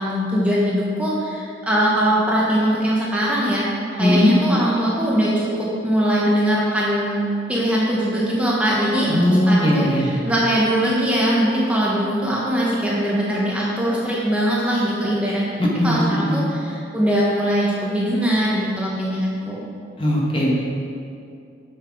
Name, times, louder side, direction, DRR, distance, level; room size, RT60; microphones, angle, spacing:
voice 1, 0.0-3.7 3.9-9.2 9.5-15.4 15.8-19.7, equal, 5° right, -6 dB, 1.1 m, -21 dB
voice 2, 4.0-4.3 9.1-10.1 15.6-16.4 20.0-20.5, left 1 dB, 30° left, -4 dB, 1.4 m, -18 dB
7.7 x 5.9 x 6.1 m, 2.4 s
head